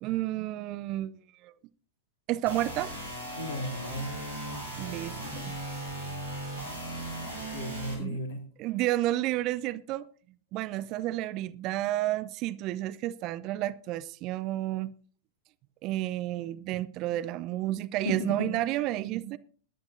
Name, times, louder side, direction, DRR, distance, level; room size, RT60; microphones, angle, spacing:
voice 1, 0.0-1.5 2.3-2.9 4.8-5.5 8.0-8.2 8.6-10.1 10.5-14.9 15.8-19.4, right 15 dB, 40° right, 0.6 m, -31 dB
sound 1, 2.5-7.9, right 1 dB, 85° right, 7.0 m, -37 dB
voice 2, 3.3-4.1 7.5-8.4 18.0-18.5, equal, 55° left, 3.3 m, -34 dB
22.0 x 10.5 x 2.7 m
figure-of-eight pair, 90°, 0 cm